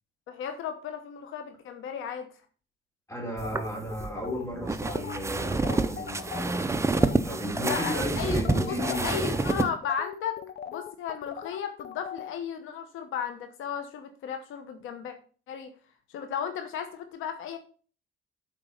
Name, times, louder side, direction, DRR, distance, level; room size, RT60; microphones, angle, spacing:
voice 1, 0.3-2.4 7.6-10.4 10.7-15.1 15.5-15.7 16.1-17.6, left 8 dB, 85° left, 1.0 m, -35 dB
voice 2, 3.1-9.2, equal, 15° left, 3.6 m, -34 dB
sound 1, 3.4-6.6 6.9-7.2 7.5-12.3, left 8 dB, 55° left, 0.8 m, -40 dB
sound 2, 3.4-9.7, right 3 dB, 15° right, 0.6 m, -28 dB
7.4 x 4.6 x 5.5 m
cardioid pair, 90°, 20 cm